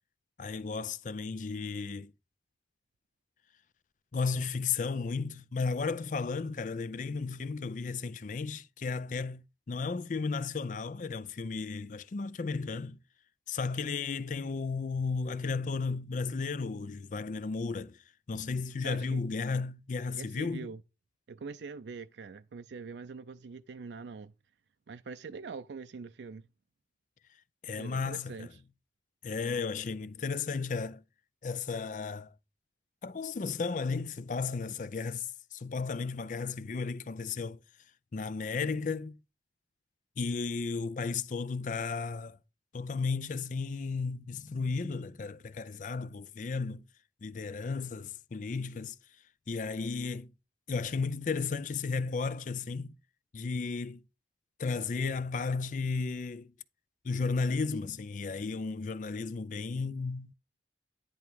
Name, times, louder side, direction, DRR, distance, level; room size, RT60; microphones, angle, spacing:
voice 1, 0.4-2.1 4.1-13.0 13.5-20.7 27.6-28.5 29.2-31.0 31.4-32.3 33.0-37.6 38.1-39.2 40.2-42.4 42.7-46.8 47.2-49.0 49.5-50.3 50.7-53.0 53.3-54.0 54.6-56.5 57.0-60.3, left 4 dB, 45° left, 0.4 m, -34 dB
voice 2, 18.8-19.2 20.2-20.8 21.3-24.3 24.9-26.5 27.7-28.6, right 4 dB, 80° right, 0.4 m, -43 dB
10.5 x 3.5 x 4.5 m
head